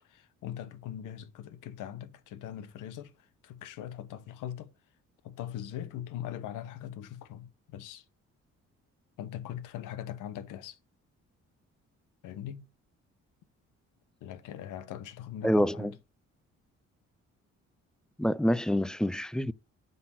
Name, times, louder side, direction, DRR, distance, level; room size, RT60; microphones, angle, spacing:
voice 1, 0.0-3.1 3.4-4.7 5.2-8.0 9.2-10.8 12.2-12.7 14.2-15.9, left 10 dB, 85° left, 1.0 m, -41 dB
voice 2, 15.4-15.9 18.2-19.5, equal, ahead, 0.4 m, -27 dB
9.4 x 4.0 x 5.9 m
supercardioid pair, 70°, 31 cm